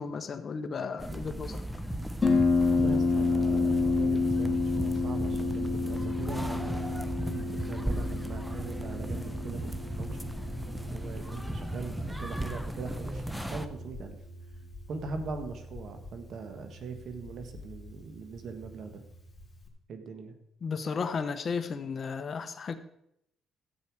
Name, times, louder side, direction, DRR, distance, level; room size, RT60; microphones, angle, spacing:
voice 1, 0.0-1.6 20.6-22.8, left 5 dB, 45° left, 10 dB, 0.9 m, -34 dB
sound 1, 1.0-13.7, equal, 5° right, 0.8 m, -36 dB
Harp, 2.2-19.7, left 3 dB, 25° left, 2.7 m, -31 dB
voice 2, 2.7-10.2 10.9-14.2 14.9-19.0 19.9-20.3, right 4 dB, 60° right, 7 dB, 1.7 m, -41 dB
13.0 x 8.2 x 4.8 m, 0.77 s
cardioid pair, 90°, 0 cm